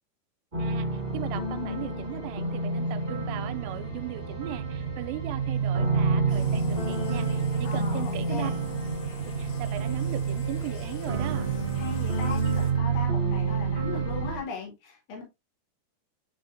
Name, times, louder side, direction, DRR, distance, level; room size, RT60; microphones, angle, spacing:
sound 1, 0.5-14.4, right 1 dB, 50° right, 0.5 m, -32 dB
voice 1, 0.6-8.5 9.2-11.5, right 14 dB, 85° right, 2.8 m, -38 dB
sound 2, 2.0-14.3, right 8 dB, 65° right, 1.7 m, -30 dB
sound 3, 6.3-12.7, left 1 dB, 80° left, 1.6 m, -44 dB
voice 2, 7.6-8.5 11.8-15.2, left 4 dB, 60° left, 4.0 m, -38 dB
10.5 x 3.5 x 2.6 m
omnidirectional pair, 5.1 m